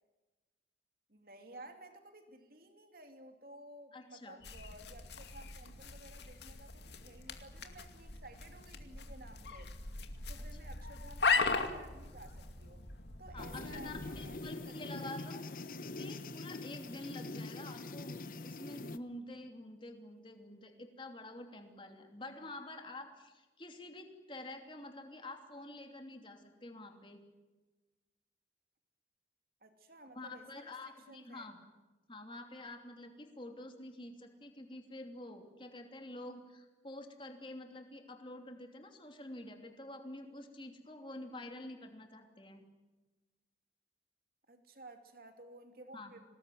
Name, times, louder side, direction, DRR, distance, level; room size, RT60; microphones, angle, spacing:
voice 1, 1.1-9.7 10.3-12.8 13.2-15.1 29.6-31.5 44.5-46.2, right 1 dB, 55° right, 6 dB, 2.9 m, -55 dB
voice 2, 3.9-4.4 13.3-27.2 30.1-31.6 32.1-42.6 45.9-46.1, left 2 dB, 30° left, 4 dB, 3.0 m, -48 dB
sound 1, 4.4-14.4, left 4 dB, 75° left, 2.4 m, -38 dB
sound 2, 13.4-19.0, left 2 dB, 50° left, 1.0 m, -44 dB
24.5 x 19.5 x 9.5 m, 1.2 s
head